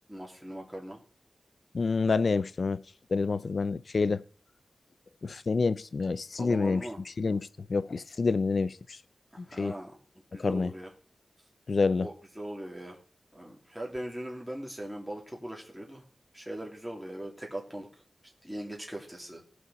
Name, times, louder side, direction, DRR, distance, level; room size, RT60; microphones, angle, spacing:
voice 1, 0.1-1.0 6.4-7.0 9.3-10.0 10.3-10.9 12.0-13.0 13.3-16.0 16.3-17.9 18.4-19.4, right 1 dB, 5° right, 2.7 m, -40 dB
voice 2, 1.7-2.8 3.1-4.2 5.2-6.8 7.2-9.0 9.6-9.7 10.4-10.7 11.7-12.1, left 4 dB, 55° left, 0.4 m, -27 dB
19.0 x 6.4 x 4.1 m
wide cardioid pair, 120°, 0 cm